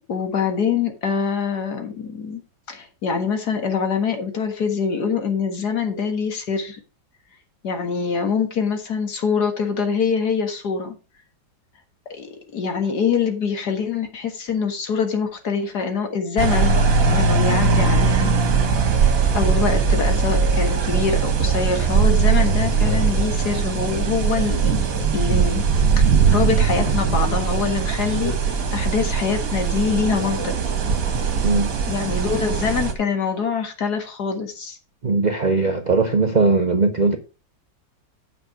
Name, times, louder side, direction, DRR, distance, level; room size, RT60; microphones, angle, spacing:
voice 1, 0.1-2.4 2.7-6.8 7.6-11.0 12.1-12.3 12.5-18.3 19.3-24.7 25.1-25.7 25.9-30.6 31.9-34.8, left 6 dB, 55° left, 2.1 m, -24 dB
sound 1, 16.4-32.9, right 5 dB, 50° right, 1.7 m, -20 dB
voice 2, 35.0-37.2, right 3 dB, 75° right, 0.4 m, -19 dB
8.9 x 6.0 x 4.7 m
omnidirectional pair, 2.0 m